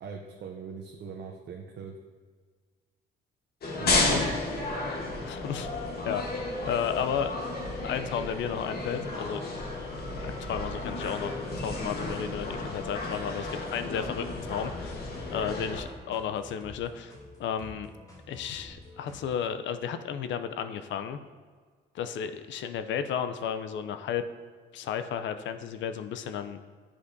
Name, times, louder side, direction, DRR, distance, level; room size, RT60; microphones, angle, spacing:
voice 1, 0.0-2.0 3.8-4.4, right 6 dB, 60° right, 2 dB, 0.6 m, -41 dB
sound 1, 3.6-15.8, left 2 dB, 55° left, 1.2 m, -32 dB
voice 2, 5.2-5.7 6.1-6.3 6.6-7.6 7.8-9.4 10.2-11.4 11.6-15.0 15.3-17.1 17.4-17.9 18.3-21.2 21.9-24.2 24.7-26.6, left 8 dB, 70° left, 10 dB, 0.5 m, -33 dB
sound 2, 14.2-19.4, left 1 dB, 15° left, 1.4 m, -49 dB
8.4 x 5.0 x 2.6 m, 1.6 s
cardioid pair, 90°, 20 cm